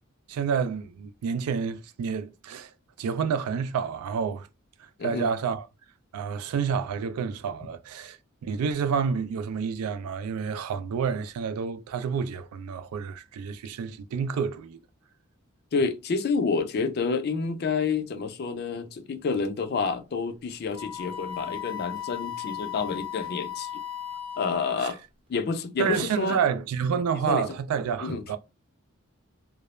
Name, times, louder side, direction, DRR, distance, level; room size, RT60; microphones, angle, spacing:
voice 1, 0.3-4.5 4.8-5.7 6.1-14.8 24.8-24.9 25.8-28.4, right 6 dB, 90° right, 0.3 m, -29 dB
voice 2, 15.7-23.7 24.4-25.0 25.3-26.4 27.3-27.4 28.0-28.2, left 4 dB, 45° left, 0.3 m, -28 dB
Wind instrument woodwind instrument, 20.7-24.9, left 10 dB, 25° right, 0.6 m, -36 dB
2.3 x 2.0 x 2.9 m
head